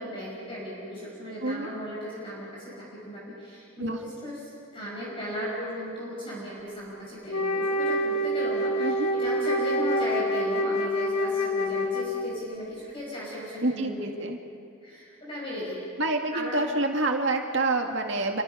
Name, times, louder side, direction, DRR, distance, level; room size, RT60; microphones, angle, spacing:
voice 1, 0.0-4.4 4.7-14.1 14.8-15.8 16.3-16.6, left 1 dB, 25° left, -5 dB, 5.8 m, -36 dB
voice 2, 1.4-1.7 3.8-4.0 8.8-9.1 13.6-14.4 16.0-18.4, right 2 dB, 60° right, 3 dB, 2.1 m, -27 dB
Wind instrument woodwind instrument, 7.3-12.5, equal, 90° left, 1.7 m, -27 dB
28.0 x 24.5 x 5.7 m, 2.6 s
head